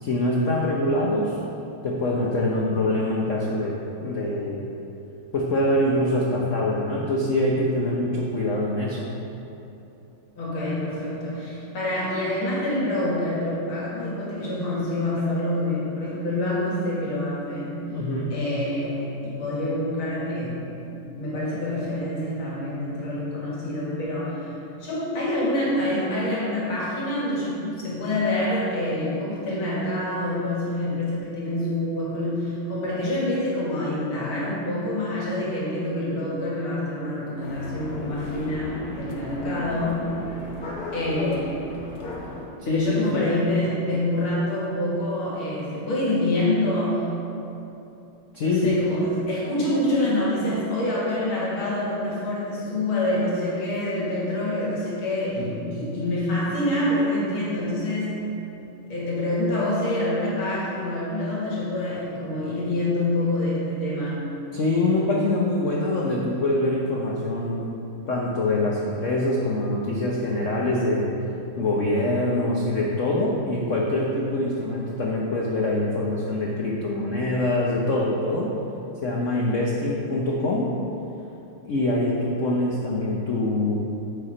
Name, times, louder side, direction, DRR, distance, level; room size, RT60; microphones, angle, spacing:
voice 1, 0.0-1.4 1.8-3.7 4.0-4.7 5.3-9.1 17.9-18.4 42.6-43.3 48.3-48.8 55.4-55.8 64.5-67.6 68.1-71.2 71.6-78.5 79.0-80.7 81.6-83.8, left 1 dB, 85° left, -3 dB, 0.6 m, -24 dB
voice 2, 10.4-17.8 18.3-20.6 20.9-40.1 40.9-41.6 42.7-47.1 48.4-58.2 58.9-64.2, left 1 dB, 70° left, -6 dB, 2.6 m, -26 dB
sound 1, 37.4-42.5, left 2 dB, 55° left, 1.2 m, -36 dB
8.3 x 4.8 x 5.0 m, 2.9 s
omnidirectional pair, 2.4 m